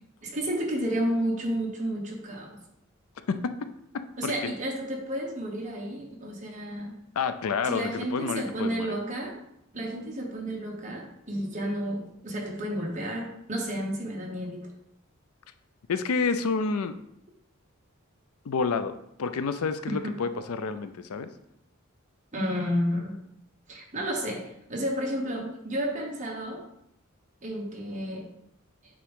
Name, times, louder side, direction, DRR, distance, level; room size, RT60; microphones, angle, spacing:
voice 1, 0.2-2.6 4.2-7.0 7.6-9.3 9.7-14.7 19.9-20.2 22.3-23.2 23.7-26.6 27.4-28.3, equal, 35° right, -1 dB, 1.3 m, -31 dB
voice 2, 3.3-4.5 7.2-9.0 15.9-17.0 18.5-18.9 19.2-21.3, left 5 dB, 90° left, 11 dB, 0.5 m, -29 dB
8.4 x 3.6 x 3.6 m, 0.78 s
head